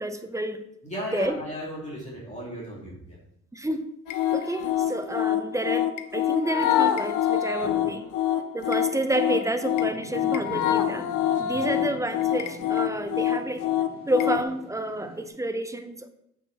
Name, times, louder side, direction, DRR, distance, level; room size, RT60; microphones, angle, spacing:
voice 1, 0.0-0.6 1.1-1.4 3.5-3.9 4.3-8.0 8.5-11.1 11.4-13.6 14.1-16.1, right 1 dB, 10° right, 8 dB, 0.7 m, -29 dB
voice 2, 0.8-3.2 11.4-11.7, equal, 25° left, -5 dB, 3.0 m, -36 dB
sound 1, 4.1-14.4, left 11 dB, 85° left, 0.7 m, -26 dB
sound 2, 9.7-15.3, right 2 dB, 30° right, 2.1 m, -44 dB
7.7 x 4.9 x 4.2 m, 0.76 s
cardioid pair, 90°, 30 cm